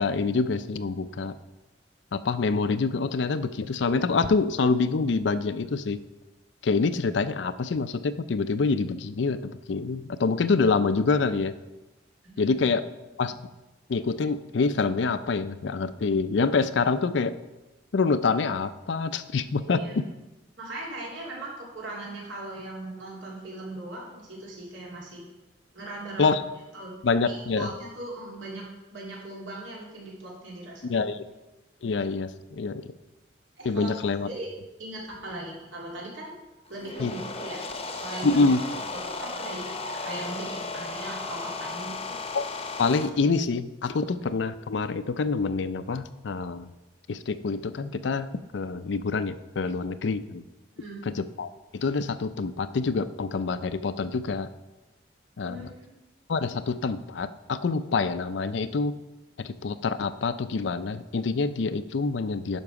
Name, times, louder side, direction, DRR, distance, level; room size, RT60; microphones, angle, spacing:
voice 1, 0.0-1.4 2.1-6.0 6.6-11.5 12.4-12.8 13.2-13.4 13.9-17.3 17.9-19.8 26.2-26.4 27.0-27.7 30.8-31.2 31.8-32.8 33.6-34.3 37.0-37.1 38.2-38.6 42.3-42.4 42.8-46.7 47.1-50.4 51.1-54.5 55.4-55.6 56.3-59.0 59.4-62.6, left 4 dB, 70° left, 13 dB, 0.5 m, -26 dB
voice 2, 12.2-12.6 19.6-19.9 20.6-25.3 25.7-26.4 26.7-26.9 27.2-31.0 33.6-33.9 34.2-34.5 34.8-36.3 36.7-37.7 38.0-38.4 38.9-42.2 50.7-51.1 55.4-56.0, right 2 dB, 85° right, -3 dB, 3.0 m, -39 dB
sound 1, 36.7-43.1, left 3 dB, 30° left, 0.7 m, -35 dB
10.5 x 5.9 x 4.8 m, 1.1 s
head